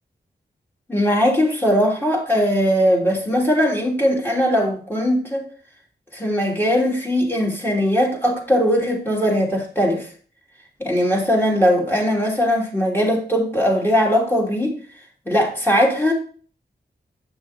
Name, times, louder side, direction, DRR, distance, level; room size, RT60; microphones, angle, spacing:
voice 1, 0.9-5.5 6.1-10.1 10.8-14.8 15.3-16.1, equal, 10° left, -1 dB, 3.0 m, -19 dB
9.3 x 6.1 x 4.4 m, 0.43 s
wide cardioid pair, 85°, 18 cm